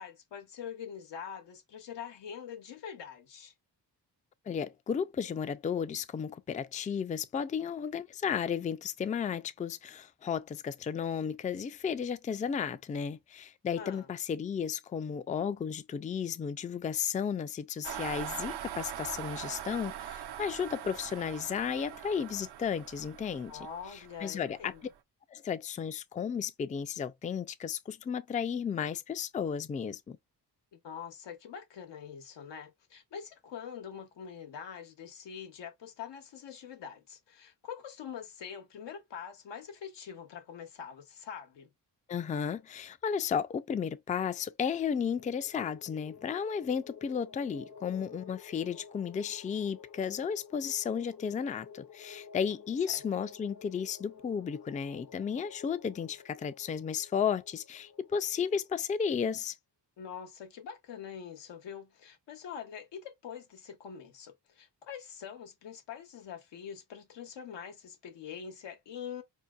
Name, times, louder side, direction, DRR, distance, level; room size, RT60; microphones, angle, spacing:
voice 1, 0.0-3.5 13.8-14.1 23.5-24.8 30.7-41.7 52.9-53.0 60.0-69.2, left 7 dB, 90° left, 0.9 m, -44 dB
voice 2, 4.5-23.6 23.9-24.9 25.3-30.2 42.1-59.6, left 7 dB, 20° left, 0.3 m, -34 dB
sound 1, 17.8-24.9, right 11 dB, 75° right, 0.5 m, -42 dB
sound 2, 44.7-59.0, left 6 dB, 60° left, 0.7 m, -53 dB
4.3 x 2.7 x 2.3 m
cardioid pair, 60°, 41 cm